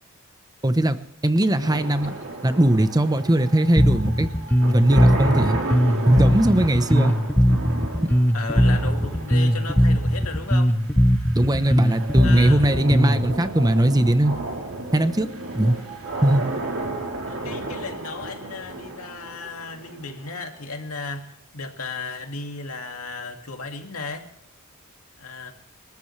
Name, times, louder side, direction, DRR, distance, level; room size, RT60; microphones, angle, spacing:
voice 1, 0.6-1.0 1.2-2.1 2.4-4.3 4.7-5.6 6.1-7.1 11.3-14.4 14.9-15.7 16.2-16.4, right 1 dB, 15° right, 11 dB, 0.9 m, -20 dB
voice 2, 1.5-1.9 8.3-10.8 11.2-11.3 11.9-12.0 12.2-12.8 17.2-24.2 25.2-25.5, left 4 dB, 75° left, 4 dB, 2.3 m, -35 dB
sound 1, 1.6-20.7, right 2 dB, 65° right, 4.4 m, -33 dB
Bass guitar, 3.8-13.3, equal, 10° left, 0.9 m, -19 dB
27.5 x 13.0 x 3.3 m, 0.75 s
head